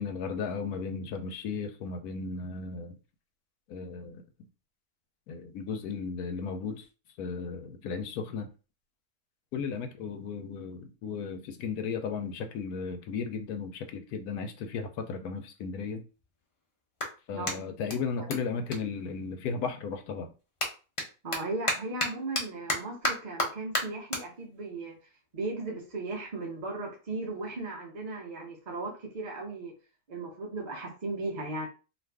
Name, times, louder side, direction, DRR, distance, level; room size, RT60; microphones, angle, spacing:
voice 1, 0.0-2.9 3.7-4.2 5.3-6.9 7.2-8.5 9.5-16.0 17.3-20.3, left 5 dB, 85° left, 1.1 m, -35 dB
Clapping, 14.9-15.0 15.6-19.7 20.0-26.6, left 1 dB, 55° left, 0.3 m, -36 dB
voice 2, 21.2-24.9 25.3-29.7 30.1-31.7, right 2 dB, 50° right, 0.5 m, -36 dB
2.5 x 2.5 x 3.3 m
omnidirectional pair, 1.6 m